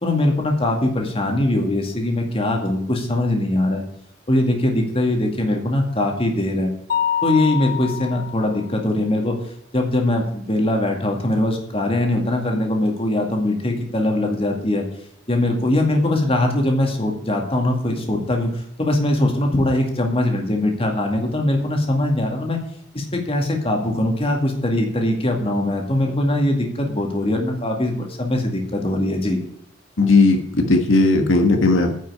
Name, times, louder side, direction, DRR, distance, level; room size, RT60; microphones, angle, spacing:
voice 1, 0.0-3.8 4.3-6.7 7.2-9.4 9.7-14.8 15.3-22.6 22.9-29.4, left 1 dB, 30° left, 2 dB, 2.2 m, -21 dB
Mallet percussion, 6.9-8.7, left 9 dB, 45° left, 0.5 m, -25 dB
voice 2, 30.0-32.0, left 3 dB, 75° left, 4 dB, 1.4 m, -16 dB
9.7 x 6.0 x 8.5 m, 0.75 s
head